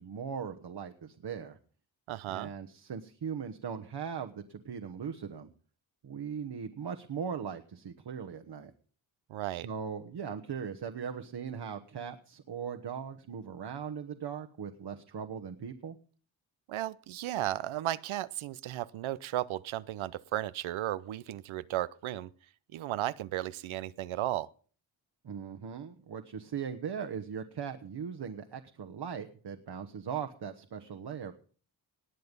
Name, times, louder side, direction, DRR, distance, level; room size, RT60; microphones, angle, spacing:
voice 1, 0.0-1.6 2.3-5.5 6.0-8.7 9.6-16.0 25.2-31.3, right 7 dB, 60° right, 7 dB, 1.3 m, -39 dB
voice 2, 2.1-2.5 9.3-9.7 16.7-22.3 22.7-24.5, right 13 dB, 90° right, 17 dB, 0.7 m, -35 dB
19.5 x 7.9 x 5.3 m, 0.43 s
cardioid pair, 60°, 46 cm